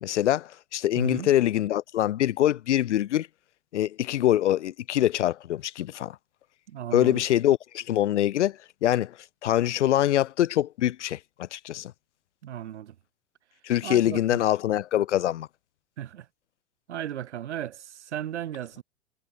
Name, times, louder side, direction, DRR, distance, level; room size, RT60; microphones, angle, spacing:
voice 1, 0.0-3.3 3.7-6.2 6.9-9.1 9.4-11.9 13.6-15.5, left 12 dB, 80° left, 0.6 m, -24 dB
voice 2, 0.9-1.3 6.7-7.2 12.4-12.9 13.8-14.2 16.0-16.3 16.9-18.8, right 11 dB, 70° right, 2.9 m, -35 dB
hypercardioid pair, 105°, 35 cm